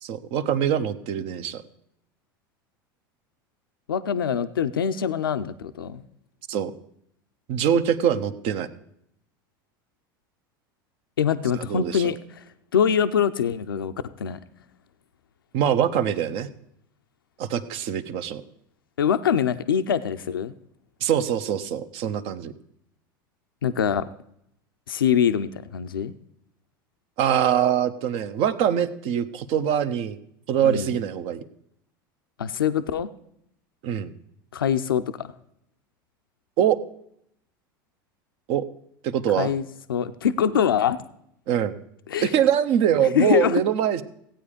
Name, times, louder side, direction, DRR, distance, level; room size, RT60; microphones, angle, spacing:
voice 1, 0.0-1.6 6.5-6.7 7.5-8.7 11.6-12.1 15.5-16.5 17.4-18.4 21.0-22.5 27.2-30.2 30.5-31.4 33.8-34.1 36.6-36.8 38.5-38.6 39.0-39.5 41.5-41.8 42.2-44.0, right 9 dB, 55° right, 12 dB, 0.9 m, -23 dB
voice 2, 3.9-6.0 11.2-12.4 12.7-13.9 14.2-14.4 19.0-20.5 23.6-24.0 24.9-26.1 30.6-30.9 32.4-33.1 34.5-35.3 39.4-41.0 42.1-42.3 43.0-43.6, left 8 dB, 90° left, 10 dB, 0.5 m, -24 dB
15.5 x 8.9 x 5.1 m, 0.74 s
hypercardioid pair, 85°, 11 cm